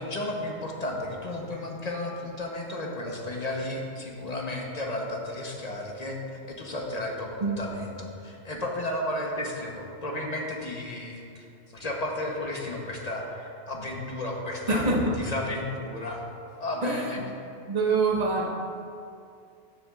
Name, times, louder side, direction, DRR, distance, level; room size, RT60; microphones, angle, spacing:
voice 1, 0.0-11.5 11.7-14.8 15.2-16.2 16.6-17.2, left 1 dB, 35° left, -1 dB, 0.9 m, -33 dB
voice 2, 14.7-15.2 16.8-17.2 17.7-18.5, right 3 dB, 35° right, -2 dB, 1.0 m, -25 dB
14.0 x 7.0 x 2.4 m, 2.4 s
omnidirectional pair, 1.2 m